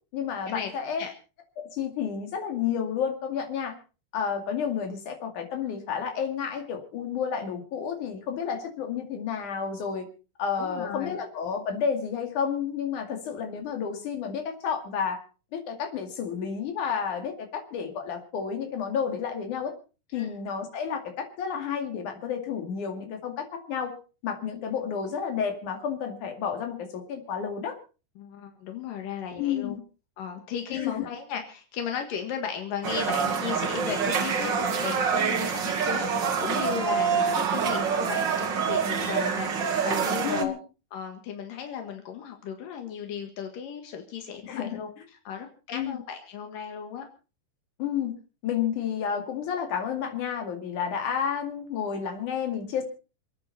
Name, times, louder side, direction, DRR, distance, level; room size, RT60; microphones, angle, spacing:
voice 1, 0.1-1.0 1.6-3.7 4.1-10.1 10.4-15.2 15.5-19.7 20.1-23.9 24.2-27.7 29.4-29.8 30.7-31.1 40.2-40.6 44.4-44.8 45.7-46.0 47.8-48.2 48.4-52.8, left 7 dB, 70° left, 4 dB, 3.8 m, -31 dB
voice 2, 10.6-11.2 20.1-20.3 28.2-29.8 30.2-40.6 40.9-44.9 45.3-47.1, left 7 dB, 85° left, 4 dB, 3.3 m, -35 dB
sound 1, 32.8-40.4, right 6 dB, 45° right, 1.7 m, -26 dB
28.0 x 9.7 x 4.2 m, 0.35 s
omnidirectional pair, 3.7 m